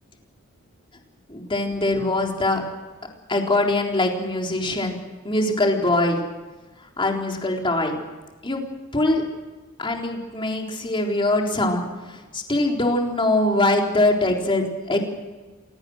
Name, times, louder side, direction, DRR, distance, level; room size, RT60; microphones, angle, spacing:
voice 1, 1.3-2.6 3.3-5.0 5.2-6.2 7.0-7.9 8.4-8.6 8.9-9.2 9.8-15.0, left 2 dB, 25° left, 1 dB, 3.9 m, -22 dB
27.5 x 18.0 x 6.5 m, 1.2 s
head